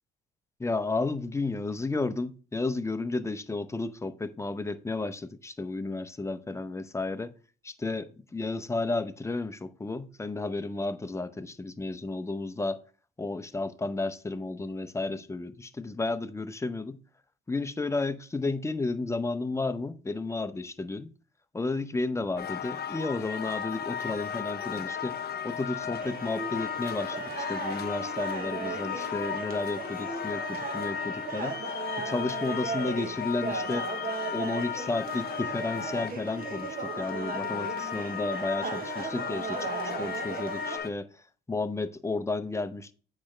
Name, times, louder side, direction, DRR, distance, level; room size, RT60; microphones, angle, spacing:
voice 1, 0.6-7.3 7.6-12.8 13.2-17.0 17.5-21.1 21.5-25.1 25.4-33.9 34.3-39.7 40.0-41.1 41.5-42.9, left 3 dB, 15° left, 0.6 m, -32 dB
sound 1, 22.4-40.9, left 8 dB, 55° left, 0.7 m, -35 dB
sound 2, 26.0-40.8, right 5 dB, 45° right, 1.0 m, -37 dB
8.5 x 3.2 x 4.9 m
cardioid pair, 90°, 20 cm